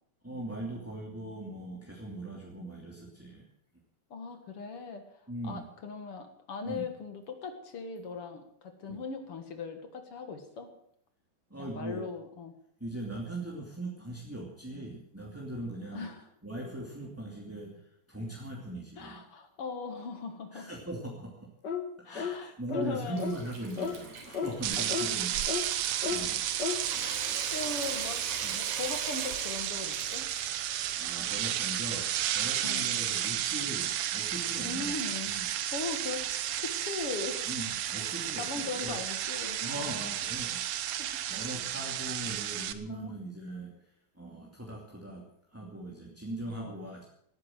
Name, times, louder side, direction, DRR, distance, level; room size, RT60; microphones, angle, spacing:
voice 1, 0.2-3.5 5.3-5.7 6.6-6.9 8.9-9.0 11.5-12.0 12.8-16.1 16.4-19.2 20.5-21.5 22.0-25.4 25.7-26.7 28.4-28.5 31.0-35.0 35.2-35.5 37.5-39.0 39.6-47.0, right 1 dB, 5° right, -3 dB, 2.0 m, -40 dB
voice 2, 4.1-10.7 11.6-12.5 15.9-16.3 19.0-20.7 22.0-23.3 24.8-25.2 27.0-28.3 28.5-30.3 32.6-32.9 34.7-35.3 35.7-37.5 38.4-40.2 41.0-41.1 42.9-43.2 46.6-46.8, left 4 dB, 50° left, 7 dB, 2.1 m, -39 dB
sound 1, 21.6-21.9 22.2-22.4 22.7-22.9 23.2-23.4 23.8-24.0 24.3-24.5 24.9-25.1 25.5-25.6 26.0-26.2 26.6-26.8, left 6 dB, 65° left, 1.0 m, -32 dB
Water tap faucet / Sink (filling or washing) / Trickle dribble, 22.7-32.6, right 3 dB, 50° right, 4.5 m, -45 dB
sound 2, 24.6-42.7, right 11 dB, 85° right, 1.4 m, -33 dB
18.0 x 9.9 x 7.7 m, 0.69 s
omnidirectional pair, 4.2 m